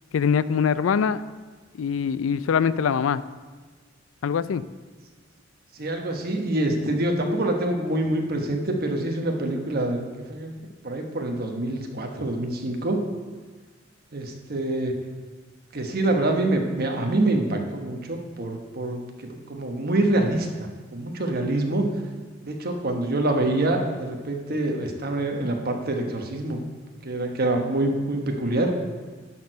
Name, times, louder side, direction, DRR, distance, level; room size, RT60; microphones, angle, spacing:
voice 1, 0.1-1.2 1.7-3.2 4.2-4.6, left 6 dB, 85° left, 16 dB, 0.4 m, -23 dB
voice 2, 5.7-10.5 10.8-13.0 14.1-14.9 15.7-21.9 22.4-26.6 27.0-28.7, right 1 dB, 50° right, 3 dB, 1.1 m, -26 dB
10.5 x 4.6 x 6.5 m, 1.4 s
head